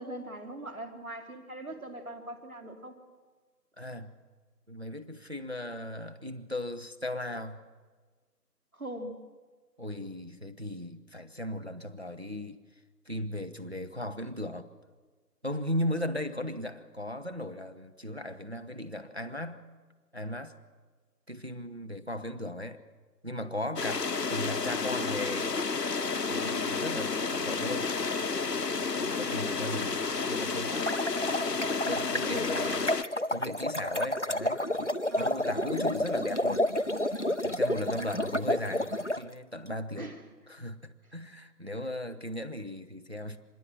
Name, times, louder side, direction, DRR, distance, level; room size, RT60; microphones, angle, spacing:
voice 1, 0.0-3.0 8.7-9.2 32.2-32.8 35.1-35.5 40.0-40.2, right 1 dB, 55° right, 5 dB, 3.1 m, -41 dB
voice 2, 3.8-4.1 4.7-7.6 9.8-12.6 13.1-14.7 15.4-19.7 20.1-20.5 21.3-22.8 23.2-25.7 26.1-27.9 29.0-30.9 31.9-33.0 33.3-34.9 35.2-36.7 37.4-40.1 40.5-43.4, left 1 dB, 40° right, 8 dB, 0.9 m, -37 dB
sound 1, 23.8-33.0, left 4 dB, 70° left, 1.0 m, -31 dB
sound 2, 30.9-39.2, left 1 dB, 45° left, 0.6 m, -30 dB
25.0 x 21.0 x 7.6 m, 1.4 s
figure-of-eight pair, 175°, 50 cm